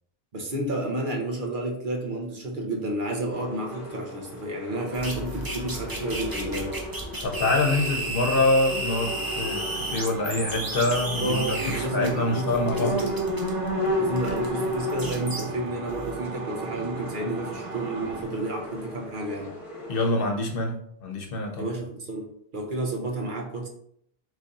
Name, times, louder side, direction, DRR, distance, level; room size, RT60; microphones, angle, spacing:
voice 1, 0.3-6.8 11.2-13.2 14.0-19.6 21.6-23.7, right 2 dB, 55° right, 0 dB, 1.1 m, -31 dB
sound 1, 3.3-20.1, equal, 30° left, 1.4 m, -34 dB
sound 2, 4.9-12.1 12.5-15.4 15.9-16.2, right 1 dB, 25° right, 0.8 m, -33 dB
voice 2, 7.2-9.6 9.9-12.9 19.9-20.8 21.0-21.6, left 2 dB, 65° left, 3 dB, 1.0 m, -25 dB
sound 3, 9.0-18.2, right 5 dB, 80° right, 1.0 m, -39 dB
4.1 x 3.2 x 3.9 m, 0.68 s
omnidirectional pair, 1.0 m